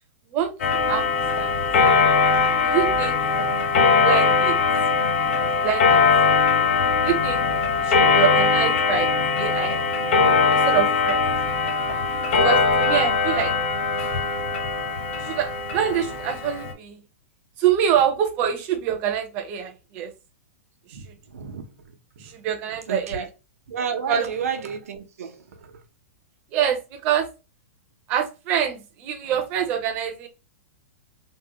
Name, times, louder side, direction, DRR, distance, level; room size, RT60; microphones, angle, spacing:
voice 1, 0.3-1.1 1.4-1.5 2.6-3.2 4.0-4.6 5.6-6.0 7.0-7.5 7.8-9.1 9.4-9.9 10.5-11.3 12.3-13.5 15.2-17.0 17.6-20.1 20.9-21.1 22.2-23.3 24.1-24.3 26.5-27.3 28.1-30.3, right 9 dB, 20° right, 0.5 m, -25 dB
Clock, 0.6-16.7, left 4 dB, 50° left, 0.9 m, -21 dB
voice 2, 21.3-21.7 22.9-23.3 23.7-25.4, right 6 dB, 85° right, 0.8 m, -31 dB
3.6 x 2.1 x 2.7 m
supercardioid pair, 180°, 8 cm